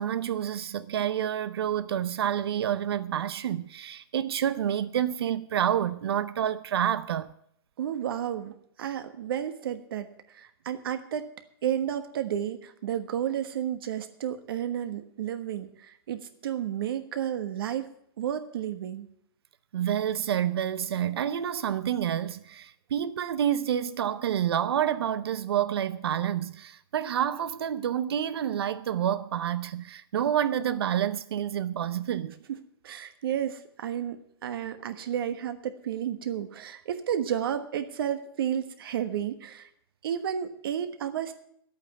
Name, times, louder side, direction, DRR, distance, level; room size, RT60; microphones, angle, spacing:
voice 1, 0.0-7.3 19.7-32.3, right 10 dB, 85° right, 0.7 m, -28 dB
voice 2, 7.8-11.3 11.6-17.9 18.2-19.1 32.5-32.6 32.8-39.7 40.0-41.3, right 9 dB, 70° right, 1.3 m, -32 dB
10.0 x 8.7 x 9.3 m
hypercardioid pair, 160°, 13 cm